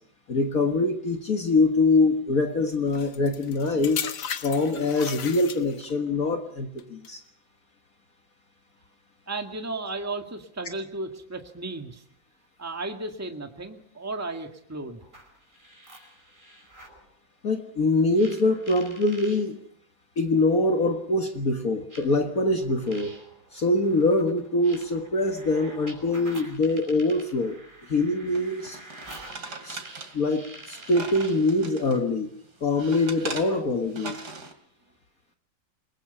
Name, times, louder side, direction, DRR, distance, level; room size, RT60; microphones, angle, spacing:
voice 1, 0.3-4.1 4.4-7.2 17.4-19.6 20.2-23.2 23.5-27.6 27.9-28.8 29.6-29.8 30.1-32.3 32.6-34.2, left 2 dB, 50° left, 5 dB, 1.9 m, -24 dB
sound 1, 2.9-6.0 6.8-7.1, left 8 dB, 80° left, 2.1 m, -35 dB
voice 2, 9.3-12.0 12.6-15.0, right 2 dB, 10° right, 4 dB, 1.8 m, -34 dB
sound 2, 15.0-17.0 18.1-19.4 20.5-20.6 21.9-31.5, right 1 dB, 25° right, 5.3 m, -48 dB
sound 3, 28.3-32.0 32.4-34.5, right 3 dB, 55° right, 3.1 m, -40 dB
29.0 x 20.5 x 5.6 m, 0.63 s
omnidirectional pair, 2.1 m